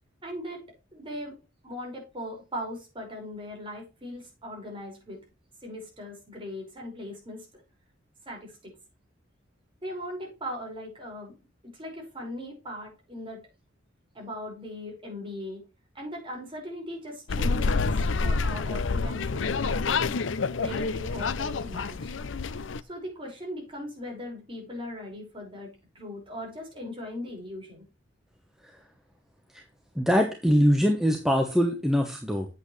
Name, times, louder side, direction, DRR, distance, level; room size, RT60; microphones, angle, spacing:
voice 1, 0.2-0.6 0.9-1.4 1.6-5.2 5.6-7.6 8.3-8.7 9.8-11.3 11.6-13.4 14.1-15.6 15.9-20.1 20.6-22.2 22.8-27.9, equal, 25° right, -1 dB, 5.5 m, -39 dB
sound 1, 17.3-22.8, left 4 dB, 80° left, 0.6 m, -28 dB
voice 2, 30.0-32.5, equal, ahead, 3 dB, 1.1 m, -23 dB
9.0 x 8.3 x 3.2 m, 0.30 s
head